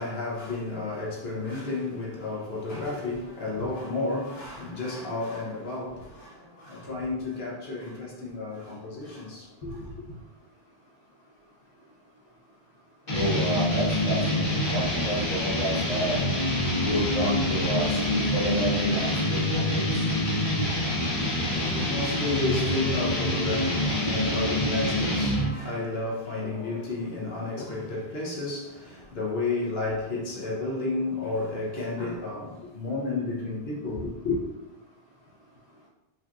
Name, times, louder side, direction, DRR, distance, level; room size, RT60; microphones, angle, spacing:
voice 1, 0.0-9.9 21.1-34.4, left 2 dB, 75° left, 1.3 m, -32 dB
sound 1, 13.1-25.6, left 1 dB, 60° left, 1.5 m, -26 dB
voice 2, 13.1-16.2 16.8-20.1, equal, 40° left, 1.0 m, -30 dB
5.9 x 3.2 x 2.6 m
omnidirectional pair, 1.0 m